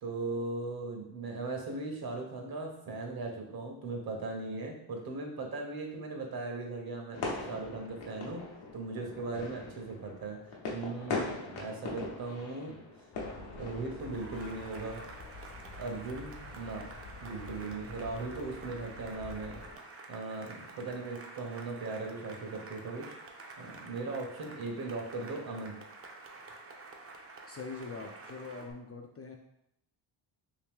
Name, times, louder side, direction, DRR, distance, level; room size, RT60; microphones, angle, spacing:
voice 1, 0.0-7.2 7.5-8.4 8.7-10.4 10.7-12.8 13.3-15.0 15.8-16.9 17.2-19.6 20.1-23.1 23.6-25.8, right 3 dB, 50° right, 2 dB, 0.9 m, -38 dB
sound 1, 7.1-13.9, left 3 dB, 85° left, 0.9 m, -40 dB
sound 2, 13.1-19.8, left 3 dB, 60° left, 0.9 m, -48 dB
Cheering / Applause, 13.9-28.7, right 3 dB, 30° right, 0.5 m, -49 dB
voice 2, 27.5-29.4, left 4 dB, 35° left, 2 dB, 0.4 m, -43 dB
2.9 x 2.7 x 3.5 m, 0.81 s
cardioid pair, 80°, 47 cm